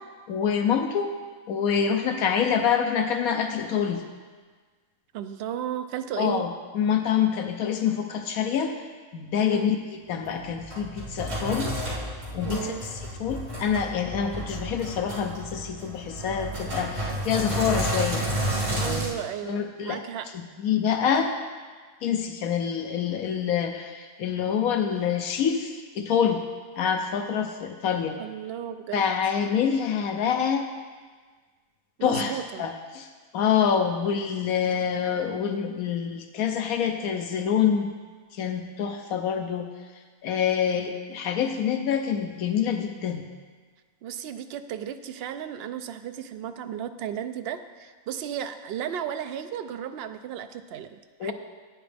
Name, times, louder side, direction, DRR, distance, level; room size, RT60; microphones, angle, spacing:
voice 1, 0.3-1.1 1.5-4.0 6.2-6.5 6.7-8.7 9.1-11.7 12.3-12.7 13.2-18.2 18.7-19.0 19.4-20.0 20.6-21.3 22.0-26.4 26.7-28.2 28.9-30.7 32.0-33.1 33.3-37.9 38.3-39.7 40.2-43.2 51.2-51.3, left 7 dB, 80° left, 5 dB, 1.1 m, -26 dB
voice 2, 5.1-6.5 9.5-9.7 12.4-12.8 18.8-20.3 28.2-29.0 32.0-32.7 44.0-51.3, right 9 dB, 70° right, 9 dB, 0.6 m, -34 dB
Sink (filling or washing), 10.2-19.1, right 1 dB, 40° right, 2.4 m, -31 dB
11.0 x 8.9 x 3.4 m, 1.5 s
omnidirectional pair, 1.5 m